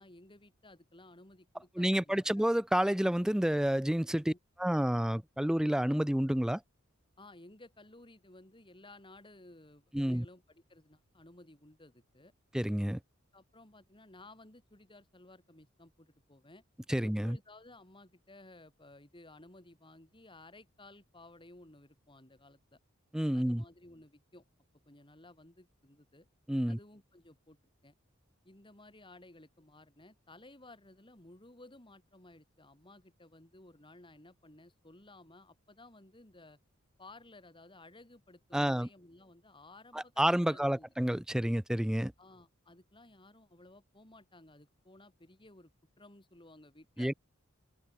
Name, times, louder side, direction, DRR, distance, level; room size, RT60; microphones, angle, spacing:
voice 1, 0.0-2.5 4.3-4.4 7.2-12.3 13.3-16.6 17.0-22.8 23.3-24.4 24.9-26.3 26.7-27.6 27.8-27.9 28.4-36.6 37.0-40.9 42.2-45.7 46.0-47.1, left 2 dB, 25° left, 4.2 m, -56 dB
voice 2, 1.8-4.3 4.6-6.6 9.9-10.3 12.5-13.0 16.9-17.4 23.1-23.6 26.5-26.8 38.5-38.9 39.9-42.1 47.0-47.1, equal, 5° right, 0.4 m, -29 dB
head